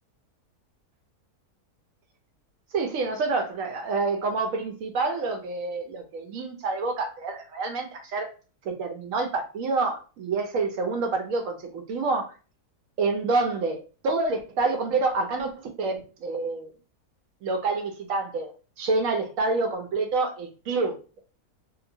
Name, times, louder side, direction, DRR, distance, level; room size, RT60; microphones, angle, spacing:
voice 1, 2.7-8.3 8.6-12.3 13.0-16.7 17.4-18.5 18.8-21.2, right 3 dB, 65° right, 4 dB, 0.9 m, -27 dB
2.8 x 2.1 x 2.6 m, 0.35 s
omnidirectional pair, 1.6 m